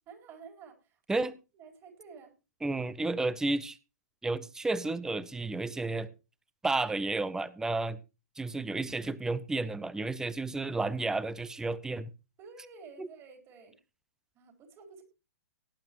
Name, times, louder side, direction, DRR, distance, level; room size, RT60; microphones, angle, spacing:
voice 1, 0.1-1.3 1.5-2.3 12.4-13.8 14.3-15.0, right 5 dB, 30° right, 3 dB, 4.2 m, -51 dB
voice 2, 2.6-3.8 4.2-6.1 6.6-8.0 8.4-12.1 13.0-13.1, right 2 dB, 5° right, 18 dB, 0.7 m, -32 dB
17.5 x 10.5 x 3.0 m, 0.29 s
hypercardioid pair, 120°, 9 cm